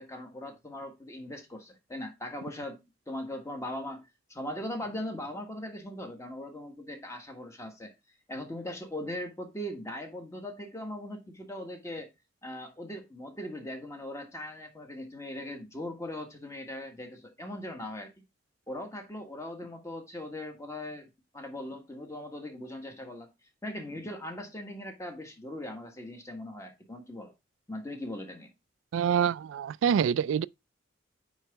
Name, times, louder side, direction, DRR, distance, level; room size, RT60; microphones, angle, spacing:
voice 1, 0.0-2.8 3.1-7.9 8.3-12.1 12.4-18.1 18.7-21.1 21.3-23.3 23.6-27.3 27.7-28.5, left 1 dB, 15° left, 1.4 m, -39 dB
voice 2, 28.9-30.5, right 8 dB, 90° right, 0.3 m, -26 dB
9.0 x 3.9 x 3.3 m
head